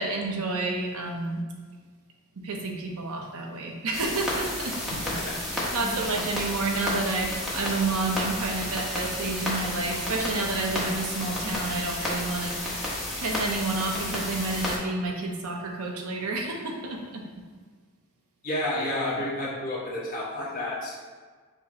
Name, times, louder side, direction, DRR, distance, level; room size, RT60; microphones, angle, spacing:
voice 1, 0.0-1.4 2.4-5.0 5.7-12.6 12.9-17.2, right 3 dB, 70° right, 1 dB, 0.7 m, -30 dB
sound 1, 3.9-14.8, left 1 dB, ahead, 0.9 m, -32 dB
voice 2, 18.4-20.9, left 1 dB, 40° left, -7 dB, 1.2 m, -30 dB
5.3 x 2.1 x 3.8 m, 1.5 s
head